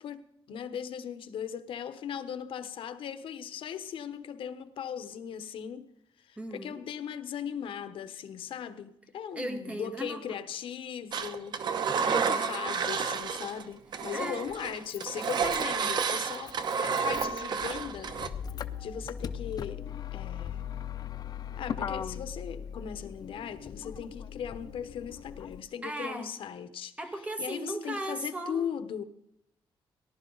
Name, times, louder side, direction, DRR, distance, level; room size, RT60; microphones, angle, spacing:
voice 1, 0.0-5.9 6.2-11.6 12.1-16.6 16.8-18.2 18.8-19.9 20.1-20.7 21.6-27.0 27.4-29.0, left 8 dB, 75° left, 1.0 m, -38 dB
voice 2, 6.4-6.8 9.3-10.4 12.0-12.5 14.1-14.5 25.8-26.3 27.0-28.7, right 1 dB, 15° right, 1.8 m, -37 dB
Engine, 11.1-13.6 13.9-18.3, right 6 dB, 55° right, 0.9 m, -30 dB
Motor vehicle (road), 13.2-13.3 14.5-25.6, left 8 dB, 45° left, 0.6 m, -39 dB
18.5 x 11.5 x 3.9 m
wide cardioid pair, 175°, 9 cm